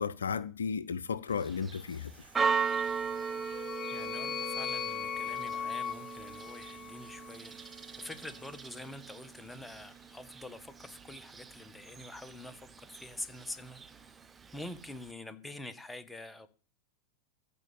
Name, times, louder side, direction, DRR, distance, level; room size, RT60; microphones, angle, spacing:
voice 1, 0.0-2.1, left 6 dB, 70° left, 0.6 m, -34 dB
Church bell, 1.3-15.1, right 6 dB, 15° right, 1.0 m, -39 dB
sound 1, 1.7-10.5, right 1 dB, 90° right, 2.4 m, -59 dB
sound 2, 3.0-7.3, left 8 dB, 35° left, 1.0 m, -39 dB
voice 2, 3.9-14.1 14.5-16.5, left 2 dB, 5° left, 1.4 m, -46 dB
15.0 x 5.4 x 8.6 m
figure-of-eight pair, 90°, 0 cm